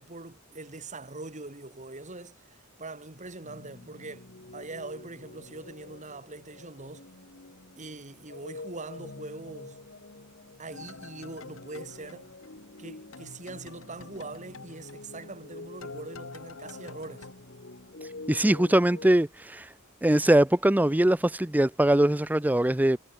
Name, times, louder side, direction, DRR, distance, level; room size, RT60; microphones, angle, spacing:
voice 1, 0.0-7.1 7.8-9.8 10.6-12.3 12.8-17.3, right 2 dB, 35° right, 2.7 m, -42 dB
sound 1, 3.4-19.2, left 2 dB, 55° left, 1.7 m, -47 dB
sound 2, 10.7-12.9 13.1-17.3, left 4 dB, 70° left, 1.5 m, -48 dB
voice 2, 18.3-19.7 20.0-23.0, right 1 dB, 10° right, 0.5 m, -22 dB
head